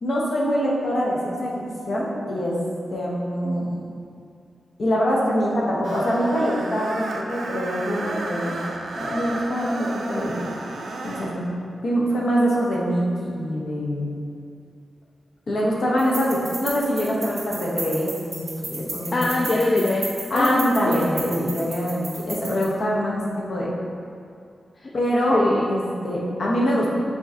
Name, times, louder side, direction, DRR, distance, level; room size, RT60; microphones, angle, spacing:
voice 1, 0.0-2.6 2.9-3.8 4.8-8.6 9.0-10.4 11.0-11.4 11.8-14.2 15.5-19.3 20.3-23.2 23.5-23.7 24.9-25.4 25.7-26.9, equal, 60° left, -4 dB, 0.9 m, -24 dB
Screech, 5.8-11.4, right 2 dB, 80° right, 0.4 m, -33 dB
sound 1, 16.0-22.6, right 2 dB, 40° right, 1.1 m, -34 dB
voice 2, 19.1-20.7 24.8-24.9 25.3-25.7, left 2 dB, 45° left, -2 dB, 0.3 m, -22 dB
4.9 x 3.8 x 2.8 m, 2.4 s
wide cardioid pair, 90°, 0 cm